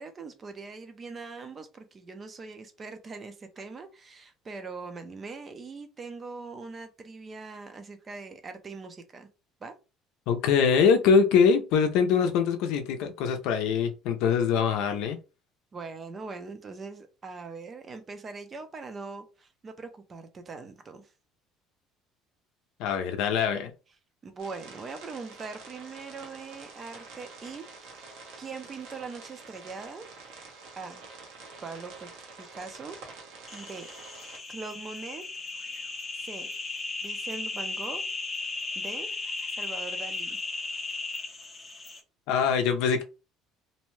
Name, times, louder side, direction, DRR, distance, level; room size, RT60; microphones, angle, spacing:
voice 1, 0.0-9.3 9.6-9.7 15.7-21.1 24.2-27.9 28.4-30.0 30.8-31.0 31.6-32.1 32.4-33.0 33.5-33.9 34.5-35.3 36.1-36.5 37.0-38.0 38.8-39.1 39.5-40.4, right 4 dB, 25° right, 0.5 m, -41 dB
voice 2, 10.3-15.2 22.8-23.7 42.3-43.0, left 6 dB, 75° left, 0.5 m, -23 dB
sound 1, 24.4-34.4, right 4 dB, 80° right, 1.0 m, -47 dB
sound 2, 33.5-42.0, left 3 dB, 20° left, 0.6 m, -36 dB
2.6 x 2.1 x 3.1 m
cardioid pair, 150°, 0 cm